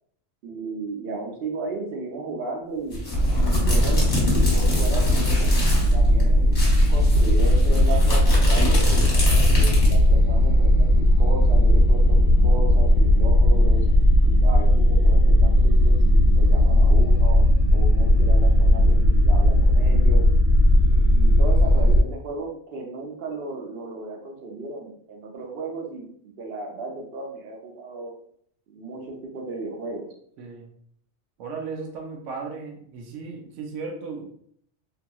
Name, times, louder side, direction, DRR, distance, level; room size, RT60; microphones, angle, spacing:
voice 1, 0.4-3.0 3.6-4.1 4.5-5.5 5.9-6.6 6.9-9.1 9.5-13.8 14.2-17.4 17.7-20.3 20.9-28.1 28.7-30.1, right 3 dB, 60° right, 1 dB, 0.8 m, -34 dB
sound 1, 2.9-5.9 6.2-6.3 6.5-10.1, left 1 dB, 45° left, 1.0 m, -27 dB
sound 2, 3.1-22.0, left 1 dB, 70° left, 0.8 m, -17 dB
voice 2, 14.2-14.6 30.4-30.7 31.4-34.3, right 4 dB, 90° right, 1 dB, 0.9 m, -36 dB
2.8 x 2.7 x 2.2 m, 0.65 s
omnidirectional pair, 1.2 m